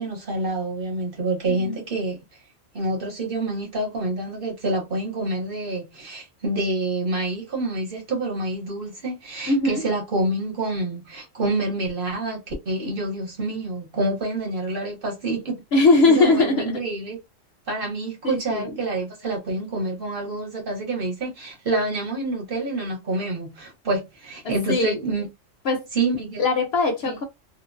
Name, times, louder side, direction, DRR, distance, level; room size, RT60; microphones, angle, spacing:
voice 1, 0.0-2.2 2.7-15.6 16.1-17.2 17.7-25.3 25.9-26.4 27.1-27.2, right 2 dB, 50° right, 1.0 m, -27 dB
voice 2, 1.5-1.8 9.5-9.9 15.7-16.8 18.2-18.8 24.4-25.0 25.6-25.9 26.4-27.2, left 3 dB, 65° left, 0.7 m, -21 dB
2.4 x 2.1 x 2.5 m
omnidirectional pair, 1.3 m